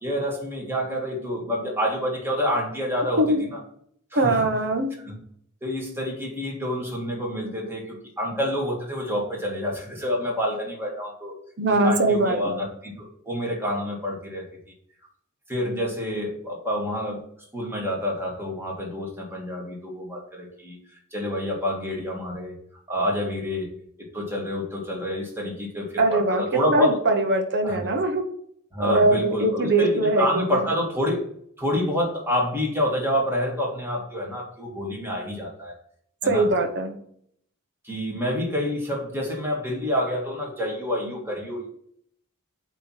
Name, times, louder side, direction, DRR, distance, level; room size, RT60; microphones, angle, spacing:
voice 1, 0.0-3.6 4.1-4.5 5.0-5.2 5.6-11.3 11.7-14.4 15.5-17.2 17.5-22.5 22.9-23.7 24.1-27.0 27.6-27.8 28.7-31.2 31.6-35.7 36.2-36.5 37.8-41.7, equal, 10° right, -2 dB, 1.9 m, -28 dB
voice 2, 4.2-4.9 11.6-12.5 26.0-28.2 28.8-30.4 36.3-37.0, right 2 dB, 50° right, 5 dB, 1.0 m, -21 dB
8.3 x 3.1 x 5.7 m, 0.67 s
head